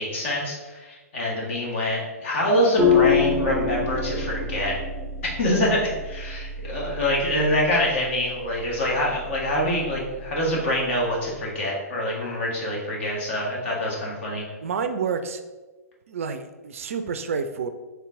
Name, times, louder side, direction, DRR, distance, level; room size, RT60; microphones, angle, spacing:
voice 1, 0.0-4.8 5.2-14.4, left 1 dB, 50° left, -3 dB, 1.5 m, -25 dB
sound 1, 2.8-11.3, left 5 dB, 5° right, 0.6 m, -28 dB
voice 2, 14.6-15.4 16.1-17.7, right 5 dB, 55° right, 9 dB, 0.4 m, -29 dB
4.3 x 3.3 x 3.7 m, 1.2 s
figure-of-eight pair, 115°, 9 cm